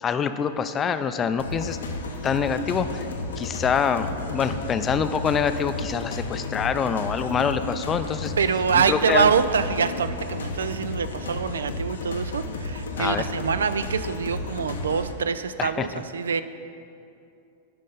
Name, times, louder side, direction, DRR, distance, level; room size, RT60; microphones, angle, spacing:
voice 1, 0.0-1.8 2.2-3.1 3.4-8.3 8.7-9.3 13.0-13.3 15.6-15.9, left 7 dB, 25° left, 10 dB, 0.4 m, -25 dB
sound 1, 1.4-15.1, left 2 dB, 90° left, 0.7 m, -33 dB
voice 2, 8.4-16.4, right 6 dB, 90° right, 12 dB, 0.3 m, -25 dB
9.2 x 5.4 x 3.9 m, 2.6 s
hypercardioid pair, 115°, 0 cm